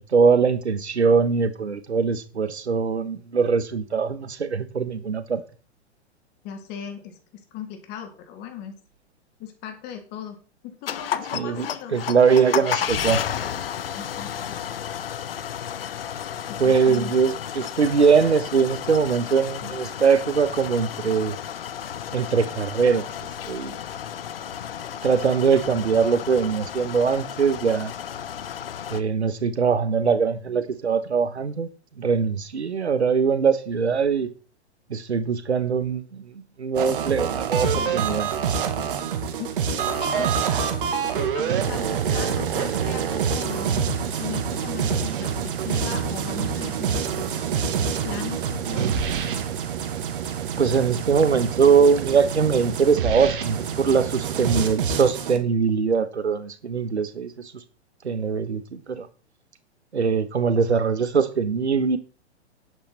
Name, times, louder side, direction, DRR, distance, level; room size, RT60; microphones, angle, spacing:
voice 1, 0.0-5.4 11.3-13.2 16.6-21.3 22.1-23.1 23.5-23.8 25.0-27.9 28.9-31.7 31.9-34.3 34.9-38.3 50.6-57.6 58.0-59.1 59.9-62.0, right 5 dB, 70° right, 1.4 m, -22 dB
voice 2, 6.4-7.2 7.5-8.7 9.4-10.4 10.6-12.0 13.9-14.3 16.4-17.1 39.4-43.8 44.2-49.0, left 9 dB, 30° left, 3.0 m, -38 dB
sound 1, 10.9-29.0, left 9 dB, 55° left, 1.0 m, -32 dB
sound 2, 36.7-55.4, right 7 dB, 50° right, 1.9 m, -26 dB
10.0 x 8.8 x 4.3 m
figure-of-eight pair, 110°, 34 cm